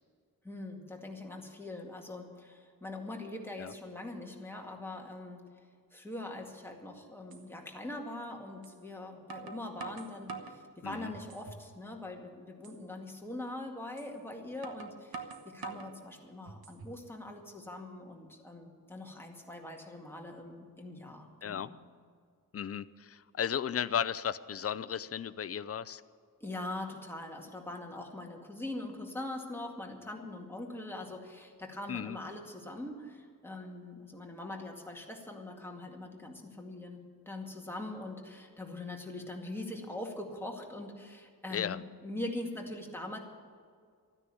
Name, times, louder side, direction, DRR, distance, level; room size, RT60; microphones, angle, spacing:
voice 1, 0.4-5.4 5.9-21.8 26.4-43.2, left 2 dB, 5° left, 0 dB, 2.1 m, -42 dB
sound 1, 6.7-6.8 7.3-7.4 8.6-8.8 9.3-10.6 11.1-11.7 12.1-12.2 12.6-12.8 14.0-14.1 14.6-15.9 16.5-17.0, right 5 dB, 80° right, 1.3 m, -45 dB
voice 2, 22.5-26.0 31.9-32.2 41.5-41.8, left 8 dB, 40° left, 14 dB, 0.5 m, -35 dB
14.0 x 9.9 x 8.4 m, 2.1 s
wide cardioid pair, 125°, 36 cm